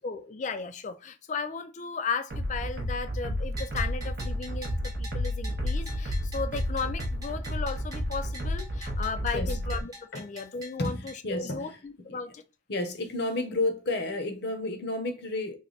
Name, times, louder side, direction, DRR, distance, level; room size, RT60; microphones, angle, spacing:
voice 1, 0.0-12.4, left 4 dB, 40° left, 0.4 m, -35 dB
sound 1, 2.3-9.8, equal, 55° right, 0.7 m, -31 dB
Bell, 3.6-11.2, right 1 dB, 20° right, 0.9 m, -46 dB
voice 2, 10.8-11.7 12.1-12.2 12.7-15.6, left 2 dB, 55° left, 0.7 m, -31 dB
3.3 x 2.1 x 3.9 m
head